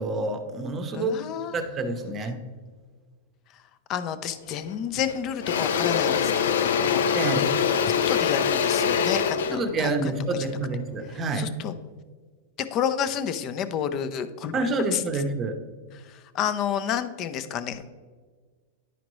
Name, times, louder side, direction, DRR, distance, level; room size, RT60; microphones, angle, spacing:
voice 1, 0.0-1.2 1.5-2.4 7.1-7.5 9.5-11.5 14.5-15.6, right 3 dB, 20° right, 7 dB, 0.8 m, -28 dB
voice 2, 0.9-1.6 3.9-7.0 7.9-10.1 10.4-10.5 11.3-11.7 12.6-14.5 14.9-15.0 15.9-17.9, left 8 dB, 35° left, 12 dB, 0.5 m, -30 dB
Engine / Drill, 4.5-4.7 5.1-11.2, left 7 dB, 80° left, 0.4 m, -24 dB
10.5 x 5.0 x 3.1 m, 1.5 s
supercardioid pair, 145°, 0 cm